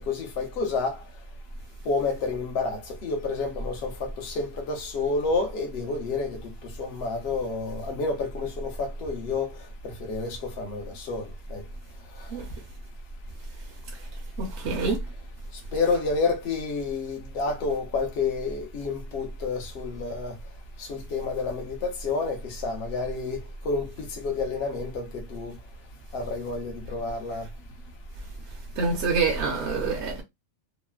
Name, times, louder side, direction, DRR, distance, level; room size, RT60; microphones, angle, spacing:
voice 1, 0.1-0.9 1.9-3.7 4.2-6.3 6.8-9.5 10.1-11.2 15.7-20.3 20.9-21.7 22.0-22.4 22.6-23.4 23.7-23.9 24.2-25.1 25.3-25.5 26.1-27.4, left 3 dB, 55° left, 0.9 m, -29 dB
voice 2, 14.4-15.0 28.8-30.2, right 4 dB, 65° right, 0.9 m, -26 dB
3.0 x 2.0 x 2.3 m
omnidirectional pair, 1.4 m